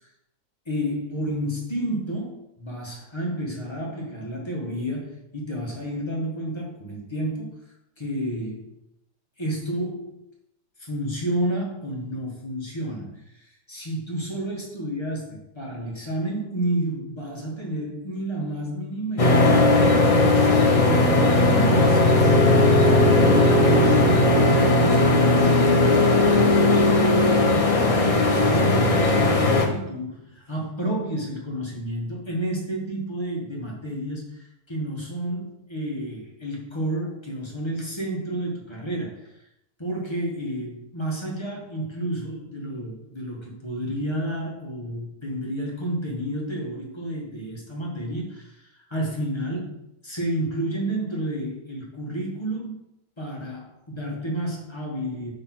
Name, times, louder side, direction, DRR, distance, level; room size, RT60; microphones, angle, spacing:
voice 1, 0.6-7.6 8.0-8.7 9.4-10.2 10.8-20.5 20.8-26.0 28.2-39.4 39.8-52.8 53.2-55.3, right 1 dB, 15° left, -3 dB, 1.3 m, -31 dB
sound 1, 19.2-29.6, left 2 dB, 35° left, 0.6 m, -17 dB
5.1 x 4.3 x 6.0 m, 0.83 s
omnidirectional pair, 1.8 m